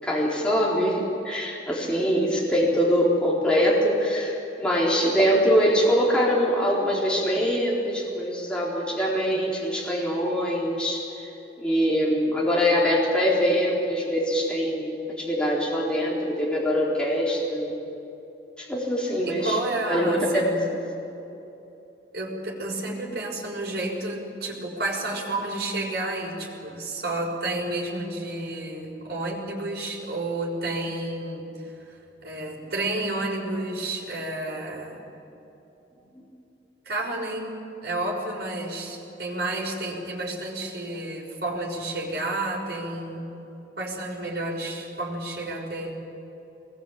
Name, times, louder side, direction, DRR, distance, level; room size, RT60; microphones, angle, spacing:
voice 1, 0.0-11.0 11.6-17.8 18.6-19.6 19.9-20.3 20.7-20.8, equal, 5° left, -5 dB, 3.9 m, -23 dB
voice 2, 19.2-20.6 22.1-31.9 32.2-35.0 36.8-37.6 37.8-43.3 43.8-45.9, right 2 dB, 65° right, -2 dB, 6.1 m, -31 dB
23.0 x 21.0 x 8.8 m, 3.0 s
head